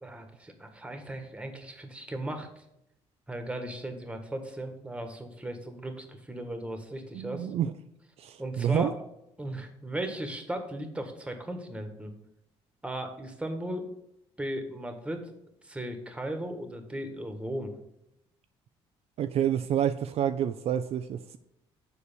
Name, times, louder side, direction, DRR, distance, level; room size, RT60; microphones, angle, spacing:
voice 1, 0.0-2.6 3.3-7.5 8.4-8.9 9.4-12.1 12.8-13.8 14.4-15.2 15.6-17.7, right 1 dB, 10° right, 6 dB, 1.5 m, -36 dB
voice 2, 7.1-7.7 8.2-8.9 19.2-21.4, right 9 dB, 60° right, 10 dB, 0.4 m, -28 dB
7.0 x 4.7 x 6.8 m, 0.81 s
supercardioid pair, 85°, 12 cm